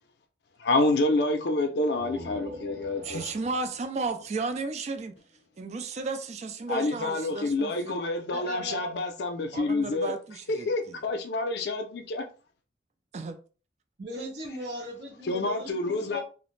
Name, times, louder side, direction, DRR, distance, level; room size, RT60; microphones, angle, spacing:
voice 1, 0.6-3.3 6.7-10.2 10.5-12.2 15.2-16.2, left 2 dB, 70° left, 0.4 m, -28 dB
sound 1, 1.8-5.4, left 1 dB, 65° right, 0.7 m, -45 dB
voice 2, 3.0-5.2 5.6-8.1 9.5-11.0 13.1-13.4, right 3 dB, 40° right, 0.3 m, -34 dB
voice 3, 8.3-9.0 14.0-16.2, equal, 90° right, 1.0 m, -37 dB
2.4 x 2.0 x 3.1 m
head